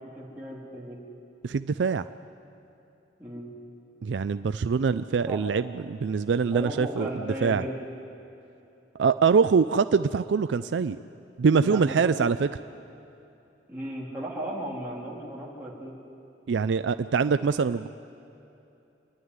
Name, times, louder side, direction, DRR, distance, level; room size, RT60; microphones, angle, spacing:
voice 1, 0.1-1.0 3.2-3.5 5.3-5.4 6.5-7.8 11.6-12.1 13.7-15.9, right 1 dB, 10° right, -6 dB, 3.2 m, -35 dB
voice 2, 1.4-2.1 4.0-7.6 9.0-11.0 11.4-12.5 16.5-17.9, right 5 dB, 75° right, 12 dB, 0.4 m, -24 dB
27.0 x 11.0 x 9.6 m, 2.8 s
head